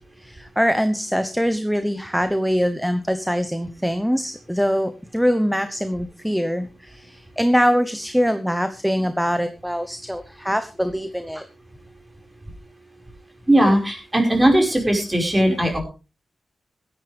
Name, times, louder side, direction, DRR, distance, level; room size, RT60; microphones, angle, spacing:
voice 1, 0.2-11.5, equal, ahead, 10 dB, 1.1 m, -23 dB
voice 2, 13.5-15.8, right 1 dB, 20° right, 2 dB, 5.6 m, -18 dB
16.5 x 13.0 x 3.5 m, 0.33 s
wide cardioid pair, 100°, 0 cm